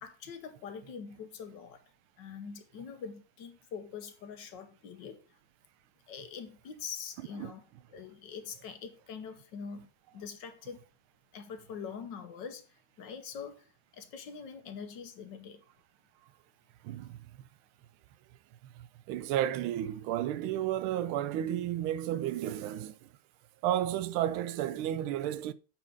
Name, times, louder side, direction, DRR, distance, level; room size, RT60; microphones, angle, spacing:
voice 1, 0.0-1.8 2.2-5.2 6.1-10.8 11.3-15.6, left 6 dB, 65° left, 1.5 m, -44 dB
voice 2, 16.8-17.5 18.7-23.1 23.6-25.5, right 12 dB, 90° right, 1.4 m, -32 dB
8.5 x 4.4 x 5.3 m
omnidirectional pair, 2.3 m